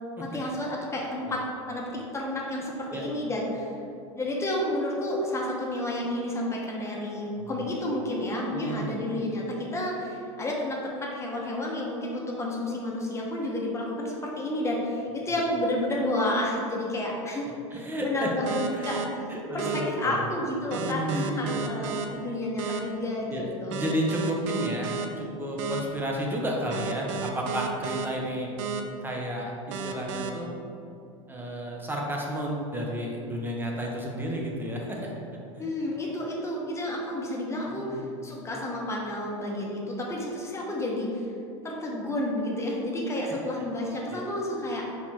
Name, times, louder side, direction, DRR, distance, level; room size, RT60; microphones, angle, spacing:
voice 1, 0.2-1.4 1.7-3.7 4.1-23.9 35.6-41.3 41.6-44.8, left 1 dB, 15° left, -2 dB, 1.0 m, -31 dB
voice 2, 8.5-9.0 17.7-18.3 18.7-19.0 19.3-20.3 20.7-21.6 23.3-28.5 29.0-30.5 31.3-35.1 35.5-35.7 37.6-38.2 44.1-44.2, equal, 10° right, -1 dB, 0.8 m, -32 dB
sound 1, 18.5-19.0 19.6-19.8 20.7-22.1 22.6-22.8 23.7-25.1 25.6-25.8 26.7-28.1 28.6-28.8 29.7-30.3, right 6 dB, 65° right, 0.5 m, -32 dB
4.1 x 3.1 x 4.2 m, 2.6 s
hypercardioid pair, 100°, 17 cm